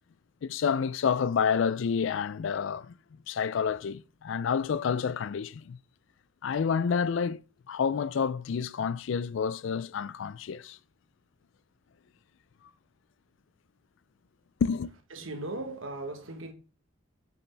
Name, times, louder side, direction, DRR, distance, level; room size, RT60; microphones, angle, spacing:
voice 1, 0.4-3.0 3.3-5.8 6.4-7.4 7.7-10.8 14.6-14.9, left 6 dB, 65° left, 0.3 m, -29 dB
voice 2, 15.1-16.5, right 2 dB, 75° right, 1.4 m, -37 dB
7.1 x 6.9 x 3.4 m
head